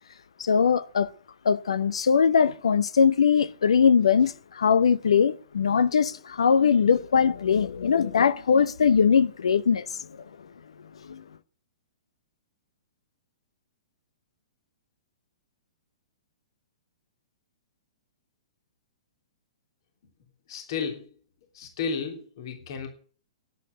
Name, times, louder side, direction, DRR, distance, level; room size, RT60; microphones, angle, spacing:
voice 1, 0.4-1.1 1.4-9.9 11.1-11.2, left 6 dB, 65° left, 0.7 m, -21 dB
voice 2, 20.5-21.0 21.5-22.9, left 6 dB, 50° left, 3.2 m, -32 dB
12.0 x 10.5 x 7.9 m
figure-of-eight pair, 110°, 3 cm